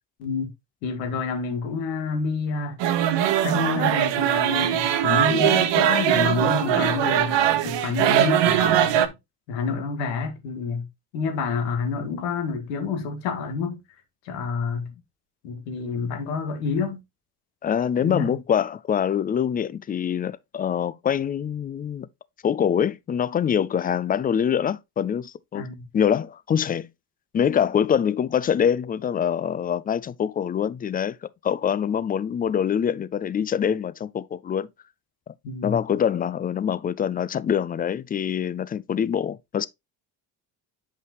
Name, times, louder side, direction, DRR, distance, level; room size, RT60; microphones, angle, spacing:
voice 1, 0.2-0.5 0.8-2.8 3.4-9.1 9.5-10.9 11.1-13.8 14.3-14.9 15.4-17.0 18.0-18.4 25.5-25.9 35.4-35.8, left 5 dB, 80° left, 1.9 m, -28 dB
sound 1, 2.8-9.1, right 10 dB, 60° right, 1.1 m, -21 dB
voice 2, 17.6-22.1 22.4-25.7 25.9-26.9 27.3-34.7 35.3-35.4 35.6-39.7, left 8 dB, 20° left, 0.3 m, -24 dB
7.9 x 5.4 x 2.9 m
hypercardioid pair, 65°, 49 cm